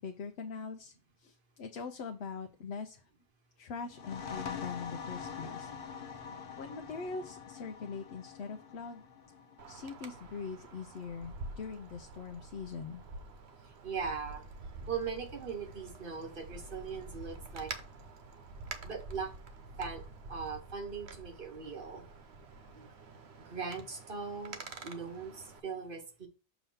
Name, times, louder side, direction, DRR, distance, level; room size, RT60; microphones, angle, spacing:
voice 1, 0.0-3.0 3.6-5.7 6.4-9.0 9.7-13.0, left 5 dB, 80° left, 5 dB, 0.9 m, -42 dB
sound 1, 3.9-11.3, left 6 dB, 60° left, 1.0 m, -45 dB
Wind, 9.6-25.6, right 3 dB, 90° right, 1.1 m, -48 dB
voice 2, 13.6-14.4 14.9-17.7 18.8-19.3 19.8-20.0 20.3-22.0 22.7-22.9 23.4-26.3, right 5 dB, 60° right, 3 dB, 1.3 m, -40 dB
6.8 x 3.1 x 5.6 m, 0.34 s
omnidirectional pair, 1.0 m